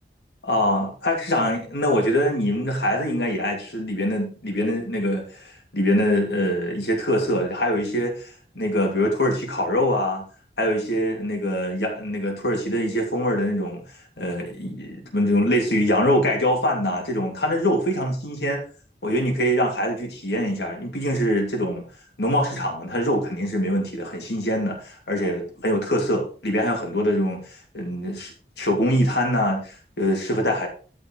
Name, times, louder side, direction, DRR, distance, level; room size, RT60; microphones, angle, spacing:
voice 1, 0.4-8.3 8.5-10.2 10.6-13.8 14.2-18.6 19.0-21.8 22.2-30.7, equal, 75° left, 2.8 m, -24 dB
13.5 x 5.1 x 4.7 m
head